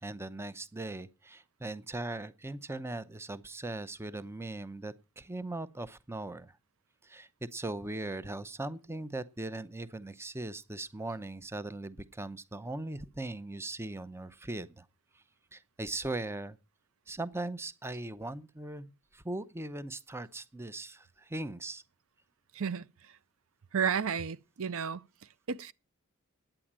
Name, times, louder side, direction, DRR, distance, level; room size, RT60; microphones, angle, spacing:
voice 1, 0.0-6.6 7.0-14.9 15.5-16.6 17.1-21.8, right 2 dB, 10° right, 0.6 m, -39 dB
voice 2, 22.5-22.9 23.7-25.0 25.5-25.7, right 6 dB, 65° right, 0.6 m, -32 dB
9.9 x 8.9 x 7.4 m
head